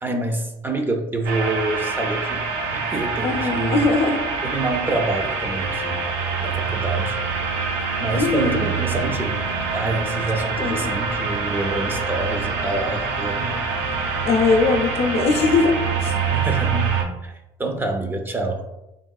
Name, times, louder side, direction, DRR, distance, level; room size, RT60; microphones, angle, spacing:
voice 1, 0.0-2.4 2.7-3.9 4.4-6.0 6.4-7.2 8.0-9.4 9.7-13.6 16.3-16.9 17.2-18.6, right 2 dB, 15° right, 4 dB, 0.4 m, -26 dB
sound 1, 1.3-17.0, right 5 dB, 90° right, 0.5 m, -25 dB
voice 2, 3.2-4.3 8.1-8.6 10.6-10.9 14.2-15.7 16.0-16.2, left 4 dB, 55° left, 4 dB, 0.5 m, -20 dB
3.6 x 2.2 x 2.3 m, 0.91 s
cardioid pair, 105°, 12 cm